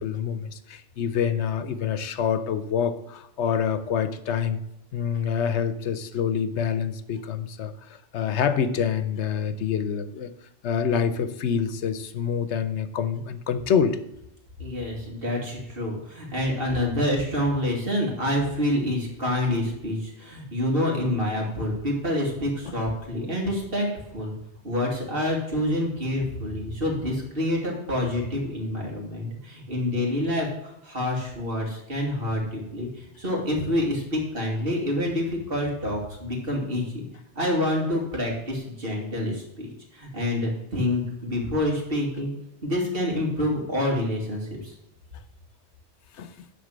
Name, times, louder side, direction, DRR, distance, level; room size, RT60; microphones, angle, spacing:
voice 1, 0.0-4.6 4.9-10.3 10.6-14.0 46.2-46.5, left 7 dB, 80° left, 12 dB, 1.0 m, -26 dB
voice 2, 14.6-23.9 24.1-24.3 24.6-37.0 37.4-42.3 42.6-44.7, left 1 dB, 55° right, -1 dB, 2.8 m, -27 dB
11.0 x 4.3 x 7.5 m, 0.86 s
omnidirectional pair, 1.2 m